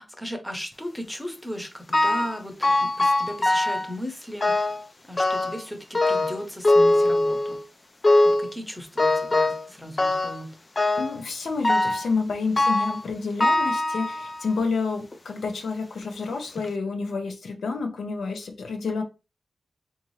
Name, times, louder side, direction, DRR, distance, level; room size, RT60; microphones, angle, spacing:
voice 1, 0.0-4.8 5.0-7.6 8.2-10.6, equal, 5° left, 0.7 m, -36 dB
sound 1, 1.9-2.4 2.6-3.9 4.4-4.8 5.2-5.6 5.9-7.6 8.0-8.5 9.0-9.7 10.0-10.4 10.8-11.2 11.6-12.1 12.6-13.0 13.4-14.5 15.1-15.2 16.0-16.1 16.6-16.7, left 2 dB, 30° left, 0.3 m, -22 dB
voice 2, 11.0-19.0, left 4 dB, 85° left, 0.6 m, -29 dB
3.6 x 2.7 x 3.1 m
wide cardioid pair, 125°, 0 cm